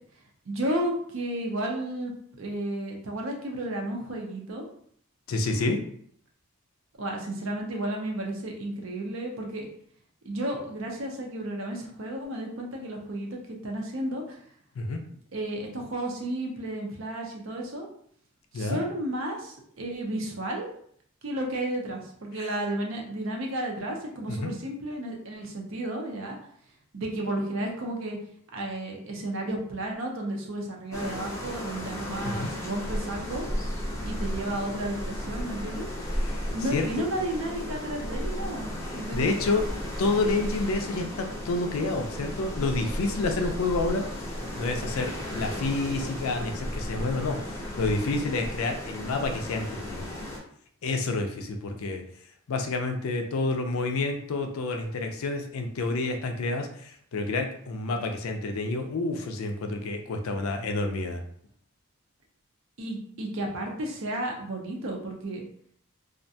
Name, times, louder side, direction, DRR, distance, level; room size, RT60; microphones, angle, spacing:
voice 1, 0.5-2.1 2.4-4.7 7.0-9.7 10.2-14.4 15.3-17.9 18.5-20.7 21.2-26.4 26.9-28.2 28.5-33.5 34.0-35.9 36.5-39.3 62.8-65.4, right 1 dB, 60° right, 1 dB, 0.5 m, -32 dB
voice 2, 5.3-5.8 14.8-15.0 18.5-18.8 22.4-22.5 24.3-24.5 32.2-32.5 36.2-36.4 36.7-37.1 38.8-39.7 40.0-44.0 44.5-50.2 50.8-52.0 52.5-61.2, left 3 dB, 70° left, 4 dB, 0.4 m, -29 dB
sound 1, 30.9-50.4, equal, 15° left, 0.5 m, -34 dB
2.4 x 2.1 x 2.6 m, 0.63 s
head